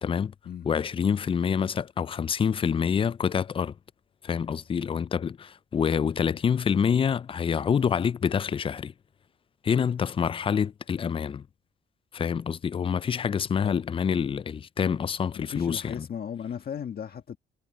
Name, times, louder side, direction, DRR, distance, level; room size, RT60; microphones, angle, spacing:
voice 1, 0.0-0.3 0.7-3.7 4.2-8.9 9.6-11.4 12.1-16.1, left 7 dB, 25° left, 0.4 m, -27 dB
voice 2, 15.4-17.4, left 8 dB, 50° left, 1.6 m, -36 dB
cardioid pair, 90°, 20 cm